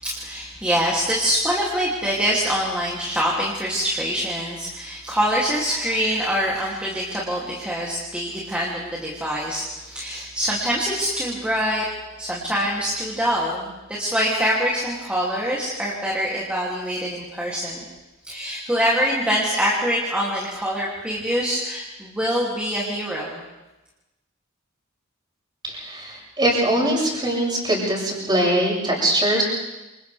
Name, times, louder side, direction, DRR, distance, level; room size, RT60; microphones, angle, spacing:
voice 1, 0.0-11.8 12.2-17.8 18.2-23.4, equal, 5° right, -5 dB, 2.9 m, -24 dB
voice 2, 25.6-29.4, right 1 dB, 20° right, -4 dB, 7.3 m, -22 dB
28.0 x 27.0 x 3.6 m, 1.0 s
head